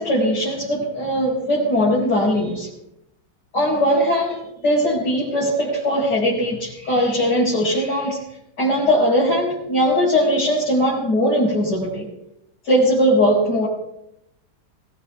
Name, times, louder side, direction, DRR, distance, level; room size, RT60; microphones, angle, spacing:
voice 1, 0.0-2.7 3.5-8.2 8.6-12.1 12.6-13.7, equal, 50° left, -5 dB, 5.5 m, -20 dB
22.0 x 19.5 x 2.3 m, 0.81 s
omnidirectional pair, 2.3 m